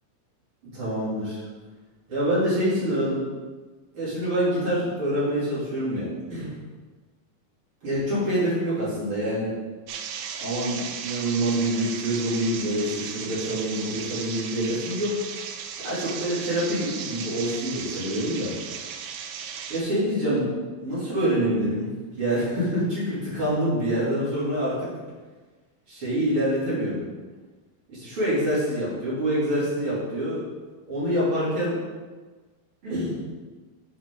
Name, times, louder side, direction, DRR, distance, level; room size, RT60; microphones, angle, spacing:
voice 1, 0.7-1.4 2.1-3.2 3.9-6.5 7.8-9.5 10.4-15.1 15.8-18.5 19.7-20.5 20.8-21.9 22.2-24.9 25.9-27.0 27.9-30.4 30.9-31.8 32.8-33.1, equal, 40° right, -10 dB, 3.1 m, -26 dB
sound 1, 9.9-19.8, right 7 dB, 80° right, 1.9 m, -36 dB
7.7 x 5.0 x 3.7 m, 1.4 s
omnidirectional pair, 3.8 m